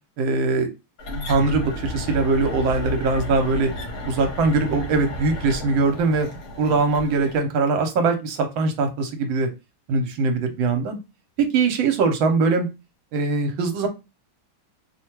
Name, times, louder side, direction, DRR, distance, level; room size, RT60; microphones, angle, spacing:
voice 1, 0.2-0.7 1.2-3.7 4.1-6.3 6.6-9.5 9.9-11.0 11.4-12.7 13.1-13.9, right 4 dB, 80° right, 5 dB, 1.4 m, -21 dB
sound 1, 1.0-7.4, equal, 55° left, 1.4 m, -32 dB
3.3 x 2.2 x 2.9 m, 0.26 s
omnidirectional pair, 2.2 m